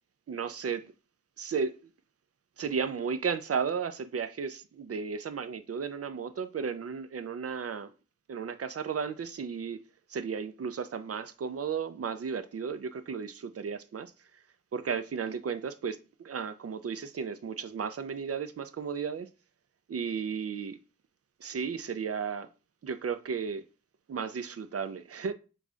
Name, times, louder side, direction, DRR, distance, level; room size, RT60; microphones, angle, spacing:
voice 1, 0.3-0.9 1.4-1.8 2.6-7.9 8.3-9.8 10.1-14.1 14.7-16.0 16.2-19.3 19.9-20.8 21.4-22.5 22.8-23.6 24.1-25.3, right 6 dB, 50° right, 0.4 m, -34 dB
3.1 x 2.4 x 3.7 m
wide cardioid pair, 40°, 31 cm